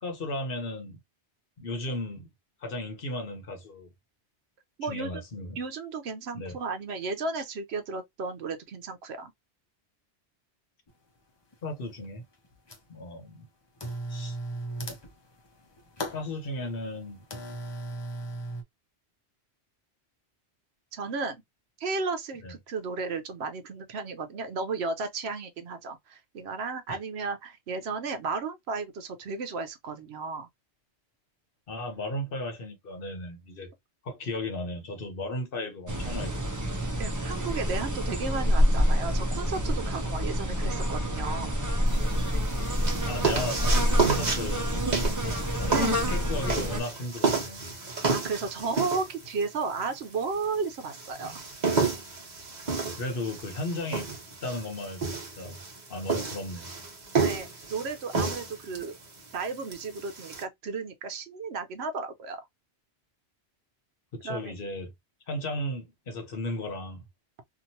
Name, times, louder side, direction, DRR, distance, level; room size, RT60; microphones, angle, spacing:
voice 1, 0.0-1.0 1.6-2.3 2.6-3.9 4.8-5.6 6.3-6.6 11.6-12.3 12.9-13.5 14.1-14.4 16.1-17.2 22.4-22.5 26.9-27.0 31.7-33.7 34.0-36.4 43.1-47.7 53.0-54.1 54.4-55.6 55.9-56.7 64.1-64.9 65.3-67.1, left 1 dB, 55° left, 1.0 m, -35 dB
voice 2, 4.8-5.2 5.6-9.3 20.9-21.4 21.8-30.5 37.0-41.6 45.7-46.2 48.0-51.3 57.2-59.0 59.3-62.4 64.2-64.5, right 4 dB, 75° right, 0.9 m, -34 dB
sound 1, 10.9-11.0 11.5-12.1 12.3-13.0 13.8-18.6, right 1 dB, 30° left, 0.6 m, -37 dB
sound 2, 35.9-46.8, equal, 20° right, 0.5 m, -27 dB
sound 3, 41.9-60.4, right 4 dB, 40° right, 1.1 m, -31 dB
2.9 x 2.5 x 2.6 m
omnidirectional pair, 1.1 m